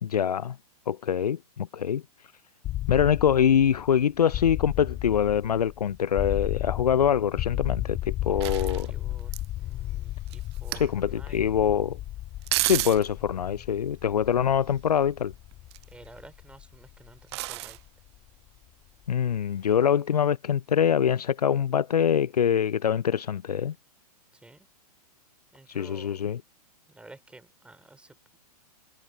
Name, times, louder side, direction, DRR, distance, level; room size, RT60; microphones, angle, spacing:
voice 1, 0.0-0.6 0.9-2.0 2.9-8.9 10.8-12.0 12.6-15.3 19.1-23.7 25.7-26.4, left 8 dB, 75° left, 0.5 m, -24 dB
sound 1, 2.6-18.5, left 14 dB, 30° left, 1.7 m, -34 dB
voice 2, 8.3-11.4 15.9-17.8 24.3-24.7 25.5-26.3 26.9-28.4, right 2 dB, 5° right, 4.0 m, -52 dB
sound 2, 8.4-9.5 10.3-11.0 12.4-13.1 15.5-16.1 17.3-17.8 19.3-19.4, right 19 dB, 45° right, 0.6 m, -31 dB
figure-of-eight pair, 110°, 20 cm